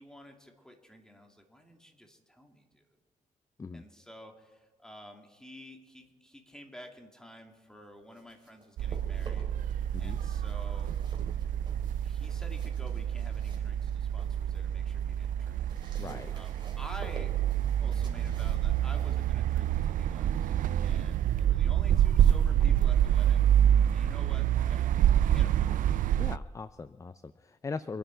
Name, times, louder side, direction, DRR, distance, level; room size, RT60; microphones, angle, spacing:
voice 1, 0.0-2.8 3.7-10.9 12.0-15.7 16.3-17.4 17.8-20.5 20.8-23.5 23.9-25.9, equal, 5° left, 3 dB, 2.5 m, -50 dB
sound 1, 7.9-9.7 10.0-14.4 14.8-21.4, right 3 dB, 35° right, 3.3 m, -52 dB
sound 2, 8.8-26.4, right 10 dB, 75° right, 0.4 m, -27 dB
voice 2, 16.0-16.3 25.7-25.8 26.2-28.0, left 4 dB, 25° left, 14 dB, 0.5 m, -40 dB
24.5 x 10.0 x 4.6 m, 1.4 s
cardioid pair, 90°, 14 cm